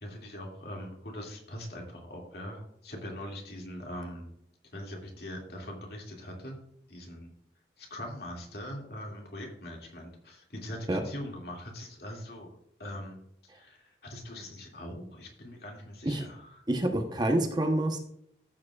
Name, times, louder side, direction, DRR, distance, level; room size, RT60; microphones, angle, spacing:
voice 1, 0.0-4.3 4.7-6.6 6.9-7.3 7.8-13.2 13.5-16.6, left 1 dB, 60° left, 0 dB, 2.4 m, -42 dB
voice 2, 16.7-18.0, right 1 dB, 25° right, 4 dB, 0.9 m, -27 dB
14.5 x 7.5 x 2.4 m, 0.72 s
head